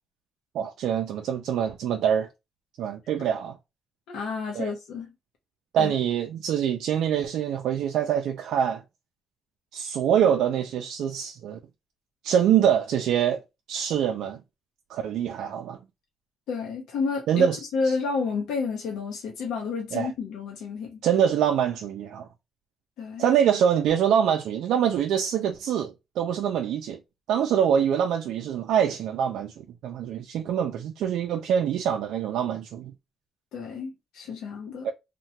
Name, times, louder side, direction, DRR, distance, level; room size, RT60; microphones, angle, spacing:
voice 1, 0.5-2.3 2.8-3.6 4.5-4.7 5.7-8.8 9.7-11.6 12.2-13.4 13.7-14.4 14.9-15.8 17.3-17.6 19.9-20.1 21.0-22.3 23.2-27.0 27.3-32.9 34.8-34.9, right 9 dB, 80° right, 0.3 m, -25 dB
voice 2, 4.1-5.1 5.8-5.9 16.5-17.5 17.7-21.0 23.0-23.3 33.5-34.9, left 4 dB, 85° left, 0.6 m, -30 dB
2.8 x 2.1 x 2.7 m
cardioid pair, 90°, 0 cm